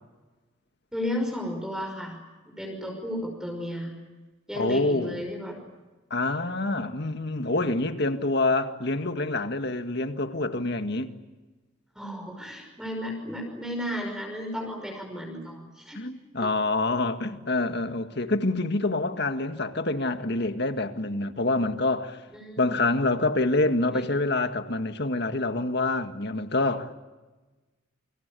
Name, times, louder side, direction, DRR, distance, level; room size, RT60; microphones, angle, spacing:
voice 1, 0.9-2.2 2.5-3.9 4.5-5.6 12.0-16.0 16.4-16.5 22.3-22.6 23.9-24.0, equal, 5° right, 5.6 m, -33 dB
voice 2, 4.5-5.2 6.1-11.1 16.0-22.2 22.6-26.9, left 2 dB, 55° left, 1.9 m, -26 dB
29.0 x 26.0 x 7.0 m
head